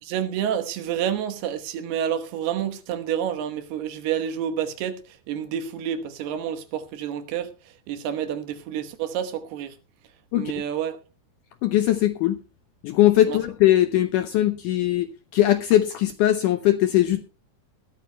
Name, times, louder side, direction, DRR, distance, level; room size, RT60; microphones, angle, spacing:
voice 1, 0.0-5.0 5.3-7.5 7.9-9.7 10.3-11.0 13.3-13.4, right 9 dB, 85° right, 3.2 m, -29 dB
voice 2, 10.3-10.6 11.6-12.4 12.8-17.2, left 13 dB, 80° left, 1.8 m, -20 dB
20.5 x 13.5 x 2.2 m
omnidirectional pair, 4.5 m